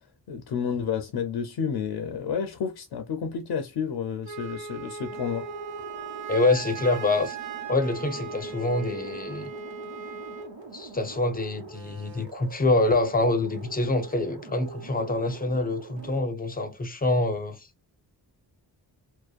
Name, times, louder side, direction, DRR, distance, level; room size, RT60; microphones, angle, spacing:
voice 1, 0.3-5.5, left 7 dB, 65° left, 0.6 m, -30 dB
Wind instrument woodwind instrument, 4.2-10.5, right 5 dB, 90° right, 0.6 m, -38 dB
sound 1, 5.1-16.2, right 4 dB, 75° right, 1.0 m, -44 dB
voice 2, 6.3-7.4 7.7-9.5 10.7-17.7, left 2 dB, 20° left, 0.6 m, -26 dB
2.6 x 2.1 x 2.3 m
cardioid pair, 55°, 44 cm